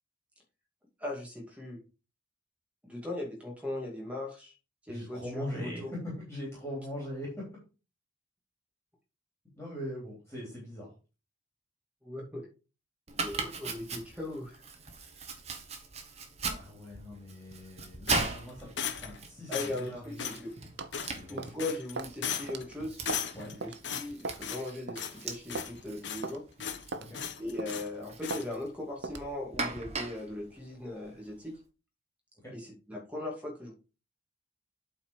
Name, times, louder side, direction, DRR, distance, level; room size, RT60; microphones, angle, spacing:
voice 1, 1.0-1.8 2.8-4.5 4.9-5.9 12.0-12.5 13.2-14.6 19.5-20.5 21.3-23.0 23.5-26.4 27.4-31.5 32.5-33.7, left 2 dB, 5° right, -1 dB, 2.5 m, -39 dB
voice 2, 4.9-7.6 9.5-10.9 16.4-18.7 19.0-20.3 21.1-21.4 23.3-23.6 27.0-27.2 32.4-32.5, left 1 dB, 10° left, -5 dB, 3.4 m, -41 dB
Domestic sounds home sounds, 13.1-31.5, right 4 dB, 30° right, 1.3 m, -40 dB
sound 1, 18.1-19.2 19.5-19.9 20.2-20.4 20.9-21.3 21.6-21.9 22.2-22.6 23.0-23.5 23.8-24.7 24.9-25.2 25.5-26.3 26.6-26.8 27.1-27.9 28.2-28.5, left 7 dB, 65° left, 0.9 m, -37 dB
sound 2, 20.8-21.0 21.4-21.6 22.0-22.2 22.5-22.6 23.1-23.3 23.6-23.8 24.2-24.5 24.9-25.0 25.5-25.7 26.2-26.4 26.9-27.1 27.6-27.8 28.3-28.5 29.0-29.3, right 3 dB, 60° right, 0.8 m, -38 dB
8.4 x 4.4 x 4.8 m, 0.33 s
head